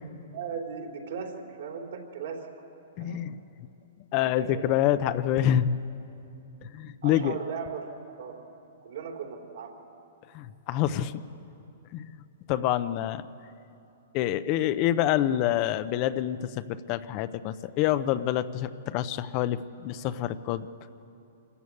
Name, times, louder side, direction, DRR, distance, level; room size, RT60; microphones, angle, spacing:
voice 1, 0.3-2.5 3.0-3.3 4.3-4.7 7.0-8.5 8.8-9.8, right 6 dB, 70° right, 1 dB, 3.4 m, -38 dB
voice 2, 3.0-3.4 4.1-5.7 6.6-7.3 10.3-11.2 11.9-12.1 12.5-13.2 14.1-20.7, left 12 dB, 40° left, 13 dB, 0.7 m, -27 dB
25.5 x 14.0 x 8.5 m, 2.8 s
hypercardioid pair, 140°, 0 cm